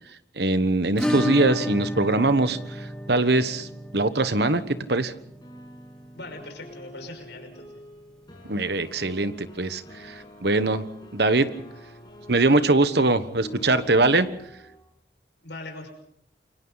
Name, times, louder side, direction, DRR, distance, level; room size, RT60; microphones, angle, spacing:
voice 1, 0.4-3.7 3.9-5.1 8.5-10.8 11.1-11.5 12.3-14.3, right 2 dB, 65° right, 12 dB, 1.3 m, -22 dB
Acoustic guitar / Strum, 1.0-9.6 9.8-9.9 10.2-10.3 10.7-10.8 12.8-12.9 14.1-14.2, left 1 dB, 5° left, 2.3 m, -34 dB
sound 1, 4.7-14.8, equal, 25° left, 6.8 m, -47 dB
voice 2, 6.1-7.7 15.4-15.9, left 2 dB, 80° left, 4 dB, 5.9 m, -40 dB
28.5 x 24.0 x 4.1 m, 0.71 s
head